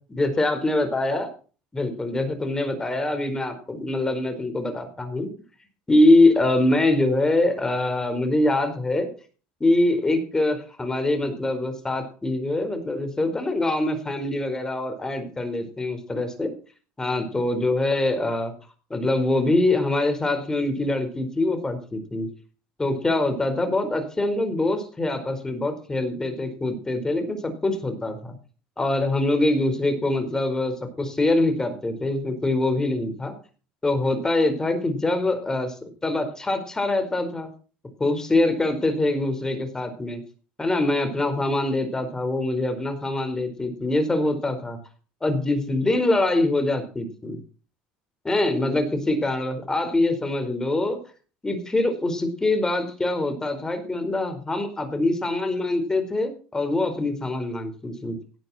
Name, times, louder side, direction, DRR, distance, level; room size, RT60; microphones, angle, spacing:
voice 1, 0.1-1.3 1.7-5.3 5.9-9.1 9.6-16.5 17.0-18.5 18.9-22.3 22.8-28.4 28.8-33.3 33.8-35.8 36.0-37.5 38.0-40.2 40.6-44.8 45.2-47.4 48.2-51.0 51.4-58.2, left 2 dB, 15° left, 7 dB, 4.7 m, -24 dB
17.5 x 11.0 x 4.4 m, 0.38 s
supercardioid pair, 100°, 4 cm